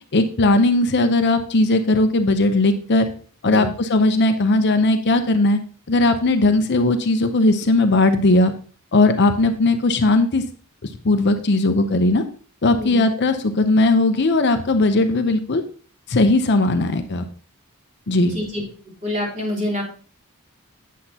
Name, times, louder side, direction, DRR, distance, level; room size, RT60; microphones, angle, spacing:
voice 1, 0.1-3.1 3.4-5.6 5.9-8.5 8.9-10.4 11.0-12.2 12.6-15.6 16.1-17.2 18.1-18.4, left 2 dB, 50° left, 8 dB, 0.7 m, -18 dB
voice 2, 12.7-13.1 18.2-18.6 19.0-19.8, left 1 dB, 30° right, -3 dB, 3.3 m, -27 dB
8.2 x 7.9 x 2.8 m, 0.42 s
head